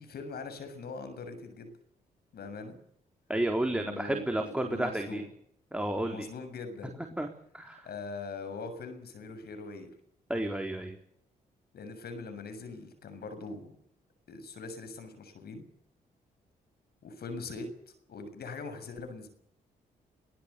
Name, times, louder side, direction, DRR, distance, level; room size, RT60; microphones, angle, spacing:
voice 1, 0.0-1.8 2.3-2.7 3.7-5.3 6.0-6.9 7.8-9.9 11.7-13.8 14.3-15.7 17.0-19.3, left 3 dB, 65° left, 8 dB, 7.0 m, -42 dB
voice 2, 3.3-5.2 5.7-6.3 7.2-7.3 7.5-7.9 10.3-11.0, right 1 dB, 5° right, 4 dB, 4.1 m, -31 dB
22.0 x 19.0 x 7.0 m, 0.68 s
supercardioid pair, 50°, 17 cm